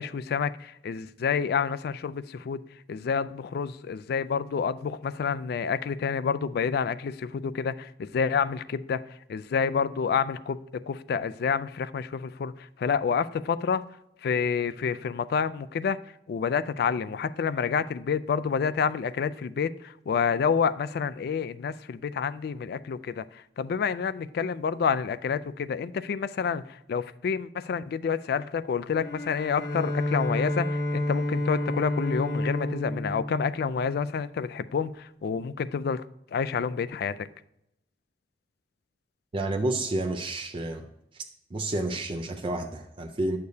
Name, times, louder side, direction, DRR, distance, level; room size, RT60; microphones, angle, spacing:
voice 1, 0.0-2.6 2.9-9.0 9.3-13.8 14.2-16.0 16.3-36.0 36.3-37.3, left 6 dB, 60° left, 15 dB, 0.3 m, -28 dB
Bowed string instrument, 28.9-34.4, left 1 dB, 90° left, 0.9 m, -30 dB
voice 2, 39.3-40.9 41.1-41.2 41.5-43.4, right 2 dB, 30° right, 4 dB, 0.5 m, -30 dB
9.4 x 6.7 x 2.7 m, 0.82 s
head